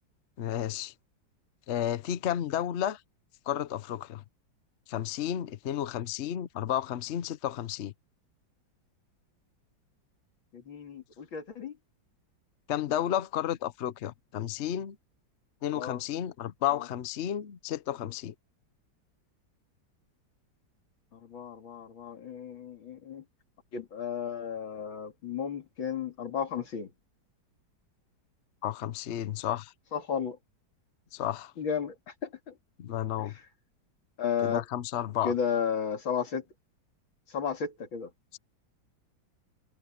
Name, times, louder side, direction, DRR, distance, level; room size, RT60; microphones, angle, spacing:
voice 1, 0.4-0.9 1.7-3.0 3.5-4.2 4.9-7.9 12.7-15.0 15.6-18.3 28.6-29.7 31.1-31.5 32.8-33.3 34.4-35.3 38.3-38.4, left 11 dB, 60° left, 0.7 m, -32 dB
voice 2, 10.5-11.7 15.7-16.0 21.1-23.2 23.7-26.9 29.9-30.4 31.6-31.9 32.2-32.5 34.2-34.6 35.2-36.4 37.3-38.1, left 7 dB, 85° left, 3.4 m, -33 dB
omnidirectional pair, 2.1 m